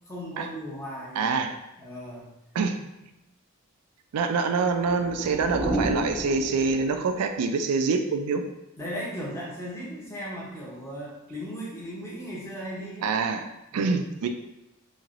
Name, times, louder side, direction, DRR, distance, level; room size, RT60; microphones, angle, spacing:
voice 1, 0.1-1.4 1.8-2.3 8.8-13.1 13.7-14.1, equal, 10° left, -5 dB, 0.7 m, -37 dB
voice 2, 1.2-1.5 2.5-2.8 4.1-8.4 13.0-13.4 13.7-14.3, right 4 dB, 85° right, 6 dB, 0.4 m, -25 dB
sound 1, 4.6-7.2, right 1 dB, 15° right, 0.4 m, -32 dB
3.1 x 2.8 x 2.5 m, 0.90 s
head